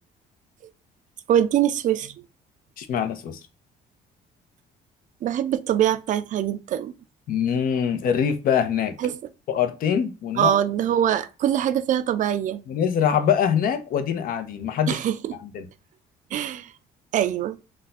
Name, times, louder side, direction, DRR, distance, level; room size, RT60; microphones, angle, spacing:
voice 1, 1.3-2.1 5.2-6.9 9.0-9.2 10.4-12.6 14.9-15.4 16.3-16.7 17.1-17.6, right 10 dB, 50° right, 0.4 m, -23 dB
voice 2, 2.8-3.4 7.3-8.9 9.5-10.5 12.7-15.0 15.3-15.7, left 8 dB, 55° left, 0.6 m, -24 dB
2.5 x 2.2 x 4.0 m
cardioid pair, 110°, 17 cm